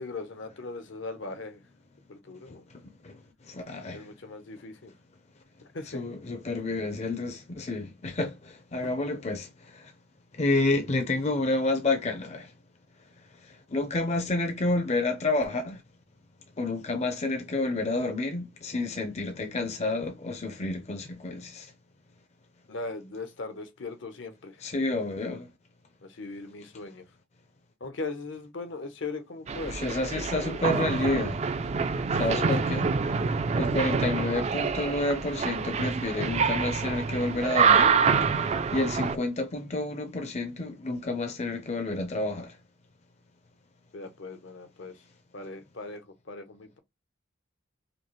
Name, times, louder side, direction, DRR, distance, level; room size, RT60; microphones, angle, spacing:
voice 1, 0.0-1.6 2.1-2.6 3.9-4.9 5.6-6.1 22.7-24.6 26.0-27.1 27.8-31.0 32.3-32.7 43.9-44.9 45.3-46.8, left 3 dB, 70° left, 0.7 m, -39 dB
voice 2, 3.5-4.0 5.9-9.9 10.3-12.5 13.4-15.8 16.6-21.7 24.6-25.5 29.7-31.4 32.1-32.9 33.5-37.9 38.7-42.6, left 2 dB, 35° left, 0.5 m, -29 dB
sound 1, 29.5-39.2, right 5 dB, 35° right, 0.3 m, -26 dB
5.1 x 2.0 x 2.9 m
head